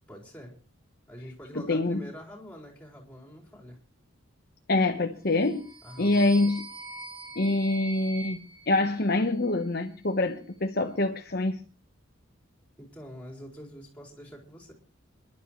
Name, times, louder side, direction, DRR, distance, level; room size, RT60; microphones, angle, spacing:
voice 1, 0.1-0.5 1.1-3.8 5.8-6.4 12.8-14.7, equal, 5° left, 4.2 m, -45 dB
voice 2, 1.5-2.1 4.7-5.7 6.0-6.7 7.4-11.6, left 2 dB, 50° left, 1.0 m, -25 dB
sound 1, 5.3-9.6, right 1 dB, 25° right, 6.9 m, -43 dB
28.0 x 12.0 x 3.1 m
head